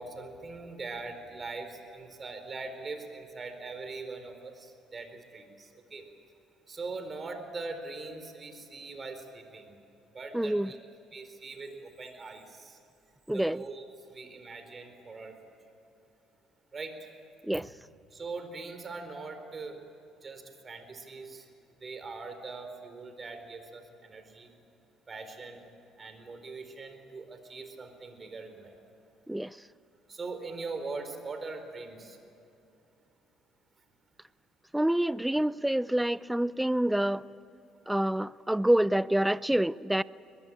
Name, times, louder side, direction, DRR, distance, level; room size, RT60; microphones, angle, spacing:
voice 1, 0.0-6.0 6.7-9.7 10.1-10.8 11.1-12.8 13.3-15.4 16.7-17.1 18.1-19.8 20.2-21.5 21.8-24.5 25.1-25.6 26.0-28.7 30.1-32.2, right 3 dB, 35° right, 8 dB, 4.4 m, -41 dB
voice 2, 10.3-10.7 13.3-13.6 17.5-17.7 29.3-29.5 34.7-37.2 37.9-40.0, right 1 dB, 5° right, 20 dB, 0.5 m, -27 dB
23.0 x 20.0 x 8.8 m, 2.9 s
hypercardioid pair, 60°, 0 cm